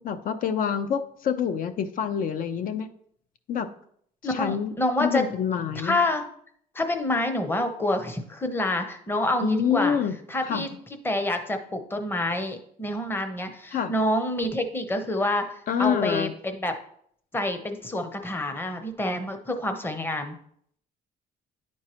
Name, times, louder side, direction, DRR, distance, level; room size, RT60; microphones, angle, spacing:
voice 1, 0.0-2.9 3.5-3.7 4.3-4.7 5.0-6.0 9.4-10.1 10.4-10.6 13.7-13.9 15.7-16.3, left 8 dB, 55° left, 10 dB, 0.6 m, -26 dB
voice 2, 4.2-5.2 5.8-6.2 6.7-10.0 10.3-10.7 11.0-15.5 15.8-16.7 17.3-20.3, left 1 dB, 15° left, 7 dB, 0.8 m, -27 dB
10.5 x 4.5 x 3.0 m, 0.66 s
cardioid pair, 110°, 17 cm